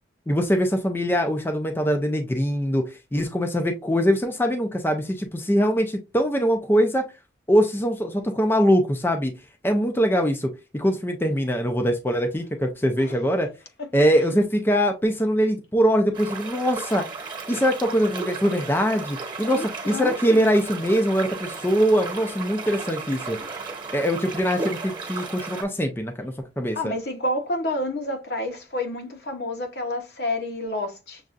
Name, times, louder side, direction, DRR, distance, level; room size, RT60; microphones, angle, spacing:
voice 1, 0.3-7.0 7.5-9.3 9.6-13.5 13.9-17.0 17.5-23.4 23.9-26.9, equal, 10° left, 0.4 m, -22 dB
sound 1, 16.1-25.6, right 4 dB, 25° right, 1.1 m, -35 dB
voice 2, 19.5-20.5 26.7-31.2, left 1 dB, 65° left, 0.9 m, -29 dB
6.4 x 2.4 x 2.4 m
head